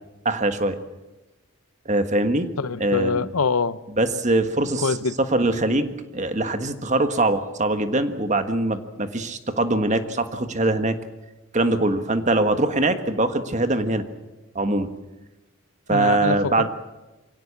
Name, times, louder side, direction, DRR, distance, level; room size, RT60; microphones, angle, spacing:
voice 1, 0.2-0.8 1.8-2.5 2.8-3.2 4.0-4.9 5.3-11.0 11.5-14.1 14.5-14.9 15.9-16.7, right 2 dB, 35° right, 1.5 m, -22 dB
voice 2, 2.6-3.8 4.8-5.2 15.9-16.7, left 4 dB, 90° left, 0.8 m, -24 dB
24.0 x 17.0 x 8.6 m
head